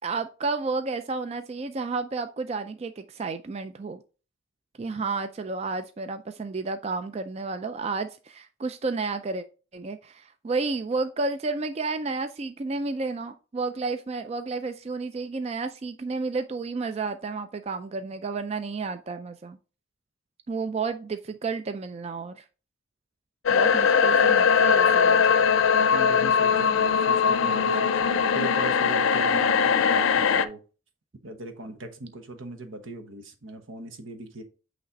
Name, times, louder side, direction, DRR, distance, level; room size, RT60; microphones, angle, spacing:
voice 1, 0.0-4.0 4.8-9.4 9.7-19.6 20.5-22.4 23.5-25.3, right 4 dB, 30° right, 0.3 m, -31 dB
sound 1, 23.5-30.5, left 6 dB, 85° left, 0.5 m, -21 dB
voice 2, 25.9-30.6 31.2-34.4, right 2 dB, 85° right, 1.1 m, -40 dB
8.4 x 3.2 x 3.9 m
head